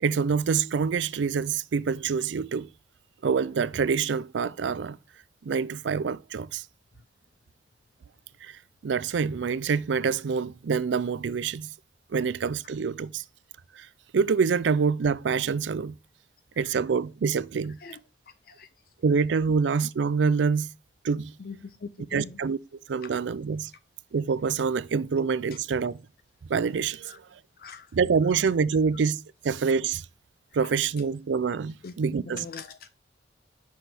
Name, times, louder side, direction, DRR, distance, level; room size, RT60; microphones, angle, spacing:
voice 1, 0.0-2.7 3.2-5.0 5.4-6.6 8.4-8.5 8.8-11.7 12.1-13.2 13.8-13.9 14.1-15.9 16.6-17.8 19.0-20.7 21.0-21.3 22.1-22.6 22.9-23.7 24.1-26.0 26.5-27.1 27.9-30.0 30.5-32.5, right 5 dB, 80° right, 0.4 m, -26 dB
voice 2, 21.4-22.4 27.1-27.2 27.6-27.9 31.8-31.9 32.3-32.9, left 5 dB, 50° left, 0.4 m, -41 dB
6.2 x 5.8 x 3.4 m
head